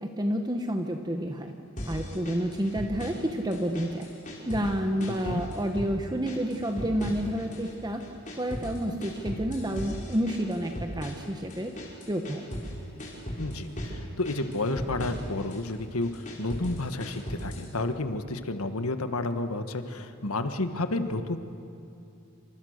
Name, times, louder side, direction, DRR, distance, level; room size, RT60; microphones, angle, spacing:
voice 1, 0.0-1.5 1.8-4.1 4.5-8.0 8.4-11.7 12.1-12.4, equal, 20° right, 4 dB, 1.1 m, -29 dB
sound 1, 1.8-3.3 3.5-4.7 5.0-5.9 6.3-7.7 8.0-12.7 13.0-14.0 14.3-15.6 16.0-17.7, equal, 35° left, 5.1 m, -37 dB
voice 2, 13.4-21.4, left 2 dB, 80° left, 8 dB, 1.6 m, -31 dB
28.5 x 25.5 x 6.6 m, 2.8 s
head